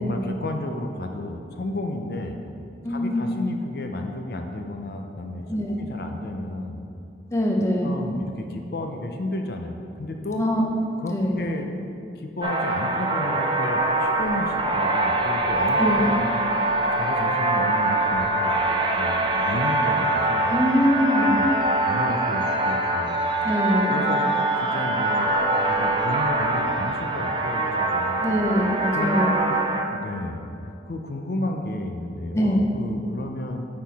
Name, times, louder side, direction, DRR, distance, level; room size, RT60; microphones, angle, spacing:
voice 1, 0.0-2.4 2.9-5.5 5.8-6.8 7.8-10.4 11.0-11.7 12.2-16.3 16.9-18.7 19.0-20.5 21.2-21.5 21.9-23.2 23.9-24.3 24.6-25.3 25.7-28.2 28.9-29.1 29.9-30.4 30.9-33.7, left 1 dB, 60° left, 4 dB, 0.5 m, -32 dB
voice 2, 2.8-3.3 5.4-5.8 7.3-8.0 10.4-10.7 11.1-11.4 15.7-16.0 20.5-21.3 23.4-24.0 28.2-29.4 32.3-32.6, equal, 15° left, -1 dB, 0.7 m, -23 dB
sound 1, 12.4-29.8, right 2 dB, 25° right, 0.4 m, -23 dB
6.5 x 6.0 x 4.1 m, 2.6 s
head